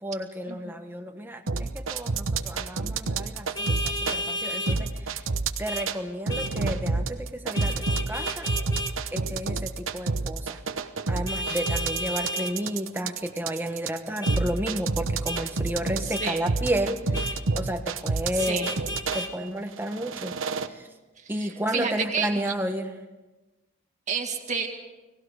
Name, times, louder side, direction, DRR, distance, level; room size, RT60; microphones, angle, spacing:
voice 1, 0.0-5.2 5.6-8.5 9.1-10.6 11.1-18.7 19.1-20.9 21.3-22.9, equal, 10° right, 5 dB, 1.2 m, -32 dB
sound 1, 1.5-4.2 4.7-6.0 6.3-19.2 19.8-20.7, right 4 dB, 70° right, 1.0 m, -28 dB
Vehicle horn car horn honking, 3.5-4.8 5.7-5.9 6.3-6.5 7.5-8.9 11.3-12.5 14.2-14.4 15.3-15.4 16.1-16.3 17.1-17.4 18.4-19.3, left 1 dB, 20° left, 1.6 m, -32 dB
voice 2, 21.2-22.3 24.1-24.7, right 5 dB, 35° right, 4 dB, 2.1 m, -30 dB
30.0 x 18.5 x 5.0 m, 1.1 s
head